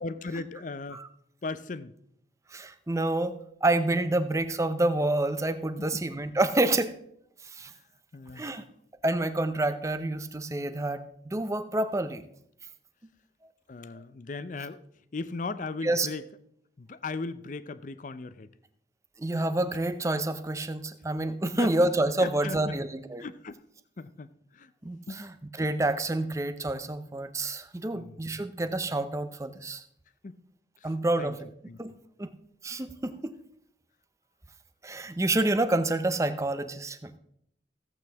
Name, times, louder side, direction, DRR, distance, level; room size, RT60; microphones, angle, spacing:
voice 1, 0.0-1.0 1.4-1.9 5.8-6.0 7.7-7.8 8.1-8.6 13.7-14.8 15.1-16.2 16.8-18.5 21.4-21.7 22.2-22.8 23.2-23.6 24.0-24.3 24.5-24.7 25.1-25.2 27.9-28.5 30.2-30.4 30.8-30.9 31.2-31.4 31.7-31.8, left 3 dB, 45° left, 14 dB, 0.5 m, -37 dB
voice 2, 2.5-3.4 3.6-6.9 7.5-7.7 8.4-8.6 9.0-12.2 15.8-16.1 19.2-23.3 24.8-25.3 25.6-29.8 30.8-31.4 31.8-31.9 32.2-32.3 32.6-33.4 34.8-37.2, right 2 dB, 15° right, 11 dB, 0.6 m, -28 dB
15.0 x 8.1 x 3.5 m, 0.72 s
head